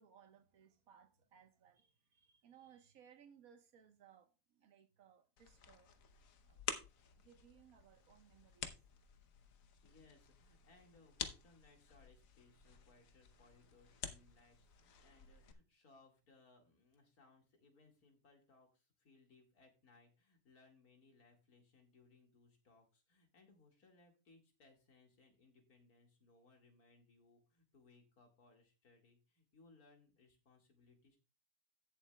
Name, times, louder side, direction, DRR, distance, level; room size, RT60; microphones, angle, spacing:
voice 1, 0.0-5.9 6.5-6.7 7.0-8.9, right 8 dB, 70° right, 1.5 m, -65 dB
sound 1, 5.4-15.5, left 7 dB, 65° left, 1.3 m, -50 dB
voice 2, 9.8-31.2, left 3 dB, 80° left, 2.5 m, -68 dB
16.0 x 7.2 x 2.2 m
omnidirectional pair, 1.6 m